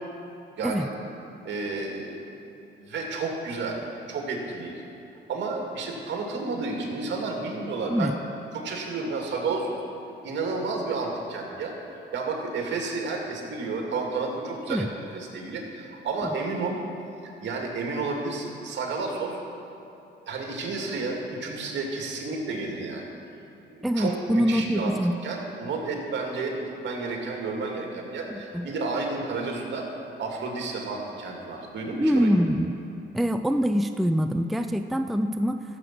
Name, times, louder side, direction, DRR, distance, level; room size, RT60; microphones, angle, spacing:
voice 1, 0.6-0.9 1.4-2.2 2.8-4.8 5.3-8.1 8.5-9.8 10.2-14.9 15.1-16.8 17.2-19.4 20.3-23.1 23.7-24.9 25.2-29.8 30.2-32.3, right 3 dB, 65° right, 0 dB, 2.4 m, -31 dB
voice 2, 23.8-25.1 28.3-28.7 32.0-32.7 33.1-35.6, equal, ahead, 8 dB, 0.4 m, -24 dB
14.5 x 7.8 x 6.0 m, 3.0 s
cardioid pair, 90°, 20 cm